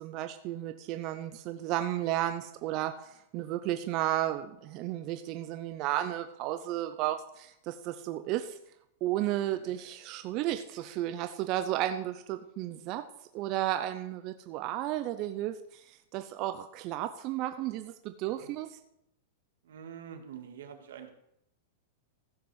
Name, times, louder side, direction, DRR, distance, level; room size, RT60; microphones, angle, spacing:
voice 1, 0.0-8.6 9.0-13.0 13.3-18.8, right 13 dB, 40° right, 9 dB, 0.6 m, -33 dB
voice 2, 19.6-21.1, right 8 dB, 90° right, 5 dB, 2.0 m, -46 dB
15.0 x 5.9 x 6.3 m, 0.79 s
supercardioid pair, 145°, 0 cm